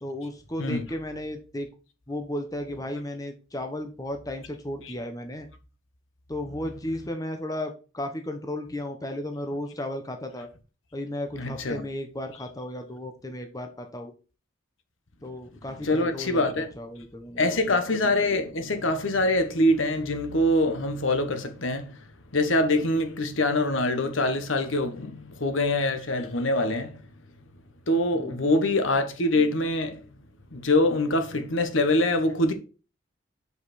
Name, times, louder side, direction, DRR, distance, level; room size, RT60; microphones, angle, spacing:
voice 1, 0.0-1.7 2.1-5.5 6.3-10.5 10.9-14.1 15.2-17.9 28.1-28.5, left 1 dB, 15° left, 1.0 m, -34 dB
voice 2, 11.4-11.8 15.8-16.7 17.4-22.0 22.3-27.0 27.9-30.0 30.5-32.5, left 1 dB, 70° left, 1.2 m, -24 dB
6.9 x 5.4 x 4.1 m
head